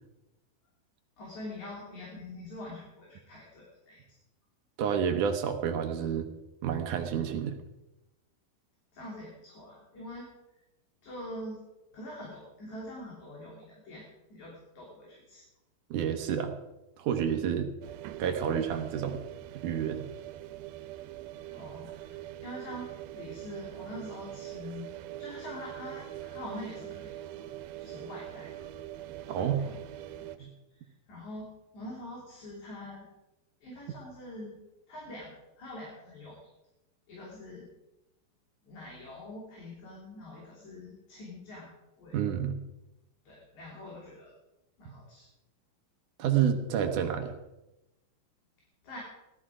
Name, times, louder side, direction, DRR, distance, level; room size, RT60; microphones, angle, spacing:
voice 1, 1.2-4.0 8.9-10.3 11.0-11.6 11.9-14.0 14.3-15.4 21.5-24.9 25.2-27.2 27.8-28.5 29.3-29.8 30.1-30.5 30.7-33.1 33.6-34.6 34.9-36.4 37.1-37.7 38.6-42.2 43.2-44.3 44.8-45.3 48.8-49.0, left 1 dB, 55° left, -4 dB, 4.4 m, -44 dB
voice 2, 4.8-6.3 6.6-7.6 15.9-16.5 17.0-17.7 18.2-19.2 19.6-20.1 29.3-29.6 30.4-30.5 42.1-42.6 44.9-45.0 46.2-47.3, right 8 dB, 70° right, 6 dB, 2.3 m, -29 dB
sound 1, 17.8-30.4, right 13 dB, 90° right, 2.7 m, -43 dB
17.5 x 12.5 x 4.9 m, 0.95 s
omnidirectional pair, 4.2 m